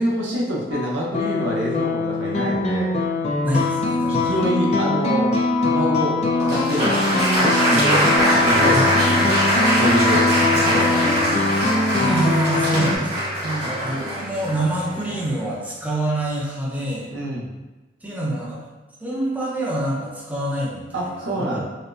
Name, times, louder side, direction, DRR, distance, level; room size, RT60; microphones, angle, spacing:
voice 1, 0.0-2.9 4.1-5.3 5.6-7.1 7.4-8.1 8.4-10.3 10.5-11.3 12.7-13.1 13.4-13.8 17.1-17.5 20.9-21.6, right 1 dB, 85° right, -3 dB, 0.7 m, -26 dB
sound 1, 0.7-13.0, left 3 dB, 35° left, 0.3 m, -22 dB
voice 2, 3.4-4.4 8.7-8.9 12.0-13.0 13.8-17.1 18.0-18.7 19.0-21.6, right 1 dB, 10° right, -6 dB, 0.6 m, -26 dB
Applause, 6.4-15.3, right 1 dB, 40° right, 1.1 m, -22 dB
sound 2, 8.2-15.6, left 2 dB, 60° left, 0.8 m, -33 dB
4.1 x 2.1 x 2.6 m, 1.2 s
head